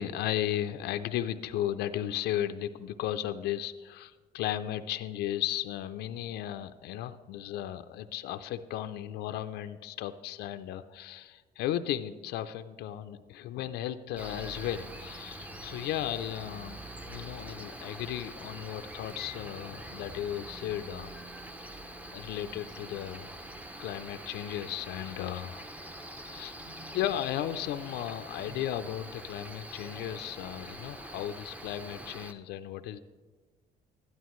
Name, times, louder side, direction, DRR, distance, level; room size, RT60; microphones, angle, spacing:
voice 1, 0.0-16.8 17.0-21.1 22.1-23.3 23.8-25.6 26.1-26.5 26.9-33.0, left 11 dB, 80° left, 10 dB, 0.4 m, -35 dB
Cricket, 14.2-32.3, right 1 dB, 10° right, 0.6 m, -44 dB
12.5 x 11.0 x 3.1 m, 1.4 s
cardioid pair, 110°, 17 cm